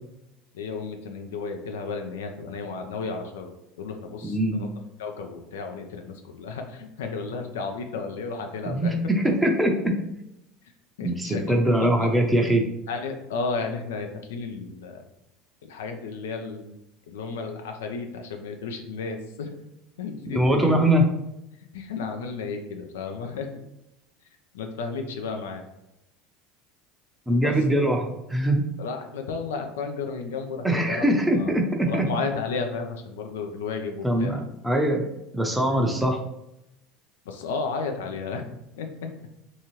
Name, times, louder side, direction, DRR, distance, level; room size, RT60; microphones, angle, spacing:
voice 1, 0.5-3.5 3.8-4.7 5.0-9.0 11.0-12.1 12.9-15.0 15.7-16.8 17.1-19.5 20.0-20.8 21.7-23.5 24.5-25.6 27.4-27.5 28.8-31.5 31.9-34.4 37.3-38.5 38.8-38.9, left 4 dB, 85° left, 4 dB, 0.4 m, -33 dB
voice 2, 4.2-4.6 8.7-9.9 11.0-12.6 20.3-21.0 27.3-28.0 28.3-28.6 30.6-32.0 34.0-35.1 35.3-36.2, right 1 dB, 10° right, 2 dB, 0.6 m, -22 dB
2.7 x 2.3 x 3.0 m, 0.86 s
hypercardioid pair, 85°, 0 cm